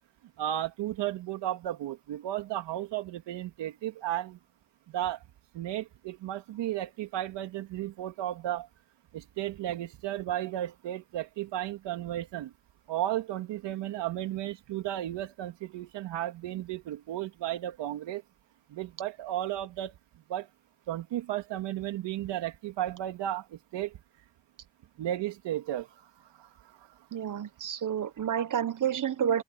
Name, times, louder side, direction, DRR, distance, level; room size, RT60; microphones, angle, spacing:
voice 1, 0.4-4.4 4.9-5.2 5.5-8.7 9.1-12.5 12.9-18.2 18.7-19.9 20.3-20.5 20.9-24.0 25.0-26.5, right 12 dB, 85° right, 3.1 m, -34 dB
voice 2, 27.1-29.4, right 8 dB, 50° right, 1.3 m, -29 dB
open air
cardioid pair, 65°, 41 cm